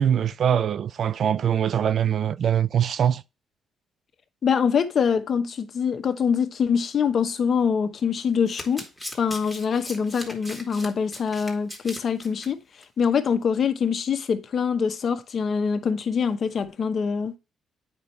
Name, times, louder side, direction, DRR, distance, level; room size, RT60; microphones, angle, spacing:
voice 1, 0.0-3.2, right 9 dB, 60° right, 0.4 m, -23 dB
voice 2, 4.4-8.8 9.2-12.6 13.0-17.3, left 6 dB, 50° left, 0.9 m, -24 dB
Domestic sounds home sounds, 8.2-12.5 12.8-13.0 13.3-13.4, equal, ahead, 1.9 m, -39 dB
8.7 x 5.4 x 3.2 m
cardioid pair, 90°, 0 cm